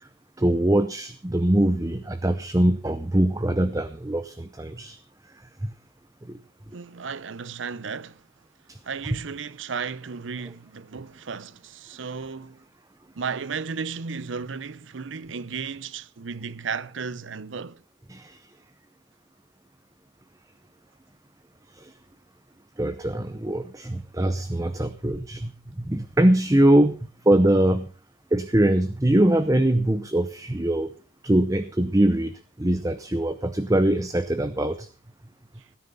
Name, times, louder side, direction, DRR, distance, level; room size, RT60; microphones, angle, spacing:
voice 1, 0.4-5.0 6.3-6.4 8.7-8.8 18.1-18.4 21.8-21.9 22.8-27.9 28.3-30.9 31.2-34.9, right 1 dB, 15° right, 0.7 m, -22 dB
voice 2, 6.7-8.2 8.8-12.6 13.2-17.8 35.6-35.7, right 5 dB, 70° right, 0.7 m, -34 dB
17.0 x 10.5 x 5.4 m
head